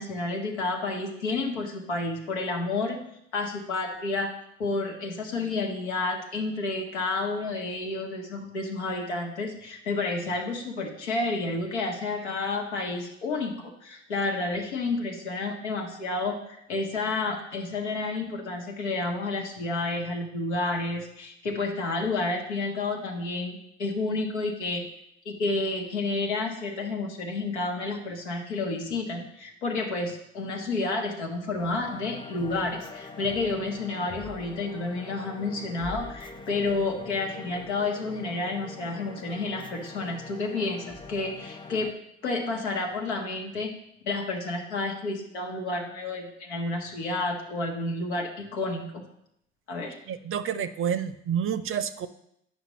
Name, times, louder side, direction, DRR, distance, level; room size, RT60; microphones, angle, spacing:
voice 1, 0.0-3.0 3.3-4.3 4.6-24.8 25.2-41.9 42.2-43.7 44.0-49.0 49.7-50.0, left 3 dB, 90° left, 2 dB, 1.1 m, -30 dB
sound 1, 31.6-41.9, left 3 dB, 15° left, 0.5 m, -43 dB
voice 2, 50.1-52.1, right 8 dB, 40° right, 13 dB, 0.6 m, -29 dB
9.4 x 5.6 x 3.0 m, 0.74 s
hypercardioid pair, 55°, 33 cm